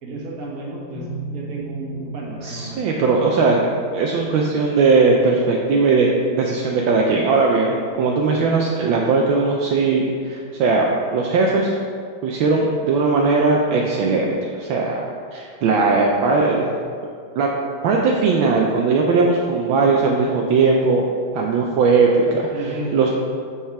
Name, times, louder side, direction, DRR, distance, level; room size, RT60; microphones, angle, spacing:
voice 1, 0.0-3.0 7.9-8.1 16.3-16.7 22.5-22.9, right 2 dB, 45° right, -3 dB, 1.5 m, -33 dB
sound 1, 1.0-13.9, right 3 dB, 65° left, 1.3 m, -40 dB
voice 2, 2.4-3.7 3.9-6.1 6.4-11.8 12.2-15.0 15.3-16.6 17.4-17.5 17.8-21.0 21.3-22.5 22.9-23.1, right 4 dB, 75° right, -1 dB, 1.3 m, -18 dB
5.6 x 4.9 x 5.8 m, 2.2 s
omnidirectional pair, 2.3 m